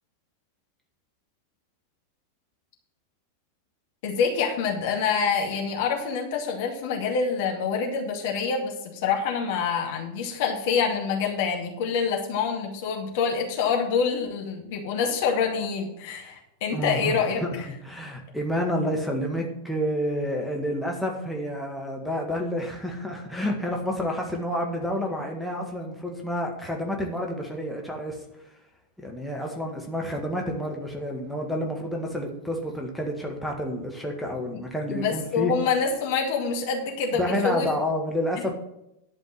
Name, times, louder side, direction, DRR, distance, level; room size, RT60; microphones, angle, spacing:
voice 1, 4.0-17.7 34.9-37.7, left 6 dB, 50° left, 1 dB, 2.2 m, -26 dB
voice 2, 16.7-17.2 17.8-28.2 29.0-35.5 37.1-38.5, equal, ahead, -1 dB, 1.8 m, -29 dB
11.0 x 5.3 x 7.5 m, 0.84 s
figure-of-eight pair, 90°, 0 cm